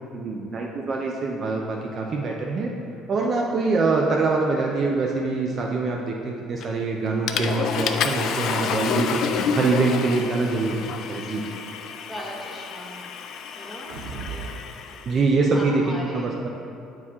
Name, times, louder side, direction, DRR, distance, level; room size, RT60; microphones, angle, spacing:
voice 1, 0.1-2.7 3.1-9.2 9.5-11.4 15.1-15.8 16.1-16.5, right 3 dB, 30° right, 0 dB, 0.4 m, -24 dB
Water / Toilet flush, 6.6-6.9 7.3-15.1, left 7 dB, 45° left, 0.3 m, -29 dB
voice 2, 12.1-13.1 13.6-14.5 15.5-16.4, equal, 5° left, -3 dB, 0.9 m, -38 dB
sound 1, 13.7-14.5 14.9-15.0, right 5 dB, 60° right, 0.9 m, -36 dB
8.1 x 4.7 x 3.6 m, 2.6 s
cardioid pair, 170°, 0 cm